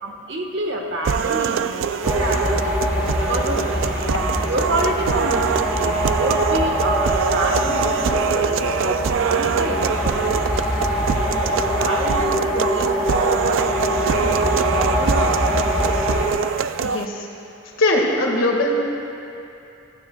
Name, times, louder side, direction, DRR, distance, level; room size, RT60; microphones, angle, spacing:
voice 1, 0.0-2.8 3.1-3.7 4.5-10.7 11.1-13.1 13.4-15.4, right 1 dB, 60° right, 1 dB, 1.3 m, -28 dB
sound 1, 1.0-17.0, right 6 dB, 75° right, 0.4 m, -24 dB
sound 2, 2.0-16.3, equal, 10° right, 1.9 m, -23 dB
voice 2, 16.8-17.3 17.8-18.7, left 1 dB, 75° left, -1 dB, 1.8 m, -20 dB
15.5 x 15.5 x 2.3 m, 2.8 s
head